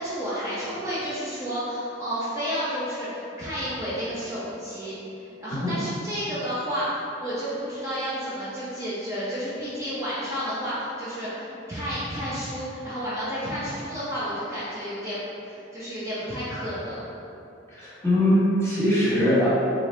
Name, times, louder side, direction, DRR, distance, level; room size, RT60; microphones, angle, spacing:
voice 1, 0.0-4.9 5.4-17.1, equal, 15° right, -11 dB, 0.6 m, -31 dB
voice 2, 17.7-19.5, left 1 dB, 15° left, -10 dB, 1.1 m, -21 dB
3.8 x 2.7 x 3.3 m, 2.8 s
head